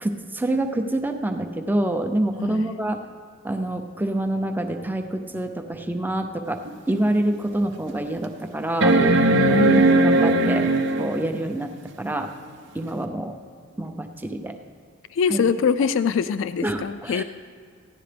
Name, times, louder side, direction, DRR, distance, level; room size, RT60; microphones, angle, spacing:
voice 1, 0.0-3.0 3.4-6.6 6.9-8.9 9.5-9.6 10.0-10.7 11.0-11.7 12.0-12.3 12.7-13.3 13.8-14.5 15.3-15.4 16.6-17.2, right 1 dB, 10° right, 5 dB, 0.6 m, -26 dB
voice 2, 2.4-2.7 9.3-9.9 15.1-17.2, left 6 dB, 70° left, 12 dB, 0.3 m, -23 dB
sound 1, 6.7-6.8 7.3-7.4 8.8-11.3 13.0-13.1, right 2 dB, 60° right, 0.7 m, -18 dB
16.0 x 11.0 x 3.4 m, 2.1 s
head